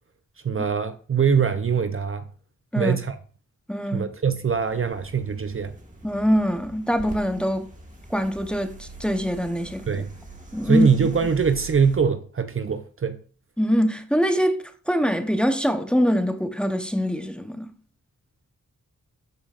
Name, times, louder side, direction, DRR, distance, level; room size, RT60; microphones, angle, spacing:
voice 1, 0.4-2.2 2.8-3.2 3.9-5.7 9.9-10.1 10.6-13.2, right 6 dB, 40° right, 0.6 m, -23 dB
voice 2, 3.7-4.1 6.0-7.7 8.1-9.8 10.5-10.9 13.6-17.7, equal, 5° left, 0.9 m, -23 dB
sound 1, 4.5-12.0, right 3 dB, 25° right, 1.6 m, -42 dB
12.5 x 4.9 x 2.5 m
cardioid pair, 65°, 32 cm